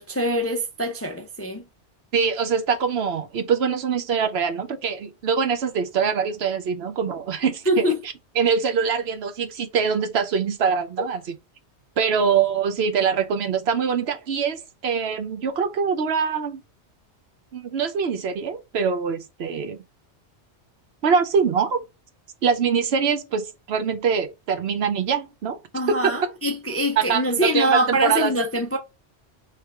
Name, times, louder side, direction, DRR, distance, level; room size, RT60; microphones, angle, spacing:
voice 1, 0.0-1.6 7.7-8.0 25.7-28.8, right 1 dB, 20° left, 0.4 m, -23 dB
voice 2, 2.1-11.2 12.0-16.6 17.5-19.8 21.0-21.8 22.4-25.6 25.9-26.1 27.0-28.3, right 6 dB, 65° right, 0.9 m, -24 dB
3.3 x 2.9 x 4.6 m
omnidirectional pair, 1.2 m